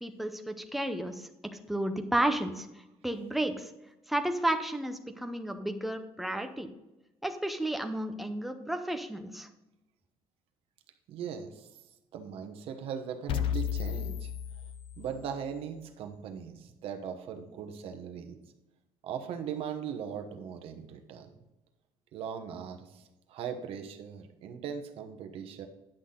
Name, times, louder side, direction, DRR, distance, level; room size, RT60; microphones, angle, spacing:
voice 1, 0.0-1.3 1.7-2.7 3.0-3.7 4.1-6.7 7.2-9.5, right 1 dB, ahead, 6 dB, 0.6 m, -32 dB
voice 2, 11.1-11.7 12.1-14.3 15.0-18.4 19.0-21.3 22.1-25.7, right 7 dB, 55° right, 6 dB, 1.1 m, -39 dB
sound 1, 13.3-15.3, left 9 dB, 50° left, 0.5 m, -33 dB
10.0 x 6.0 x 3.8 m, 0.99 s
cardioid pair, 170°, 12 cm